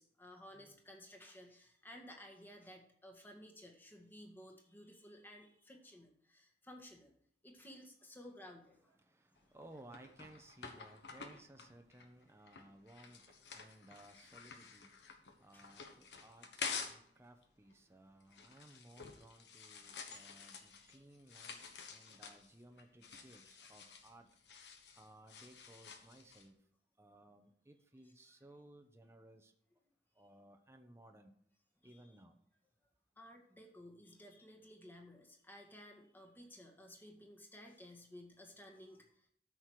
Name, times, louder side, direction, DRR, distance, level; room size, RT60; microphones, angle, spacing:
voice 1, 0.0-7.1 7.4-9.0 15.5-15.6 20.4-21.0 21.8-22.2 28.0-28.3 31.8-32.1 33.2-39.3, left 1 dB, 10° left, 1.8 m, -56 dB
voice 2, 8.9-24.3 24.6-26.6 27.0-29.5 30.1-31.4 31.8-32.4, right 1 dB, 15° right, 1.0 m, -60 dB
sound 1, 9.4-17.1 17.4-26.5, left 5 dB, 75° left, 1.4 m, -50 dB
13.0 x 6.4 x 4.8 m
head